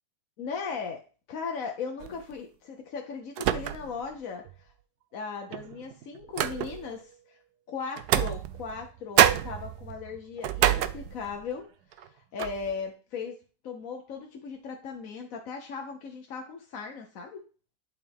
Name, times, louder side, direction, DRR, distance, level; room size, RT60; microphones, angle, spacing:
voice 1, 0.4-1.0 1.3-4.7 5.1-7.4 7.7-11.7 11.9-13.4 13.6-17.4, left 5 dB, 55° left, 2 dB, 1.2 m, -37 dB
sound 1, 2.0-2.3 3.4-4.1 4.5-4.6 5.5-7.0 8.0-8.9 9.2-11.5 11.9-12.1 12.4-12.7, right 11 dB, 70° right, 1.0 m, -27 dB
11.5 x 4.7 x 3.5 m, 0.37 s
omnidirectional pair, 2.0 m